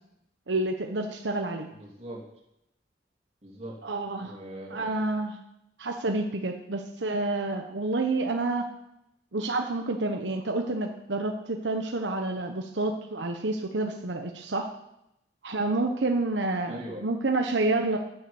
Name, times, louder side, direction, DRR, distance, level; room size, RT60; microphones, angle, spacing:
voice 1, 0.5-1.7 3.8-4.3 4.7-5.4 5.8-8.7 9.3-14.7 15.4-18.0, right 2 dB, 80° right, 4 dB, 1.1 m, -29 dB
voice 2, 1.7-2.2 3.4-3.8 4.2-4.9 16.7-17.0, right 1 dB, 35° right, -2 dB, 3.0 m, -41 dB
11.0 x 9.5 x 7.0 m, 0.83 s
head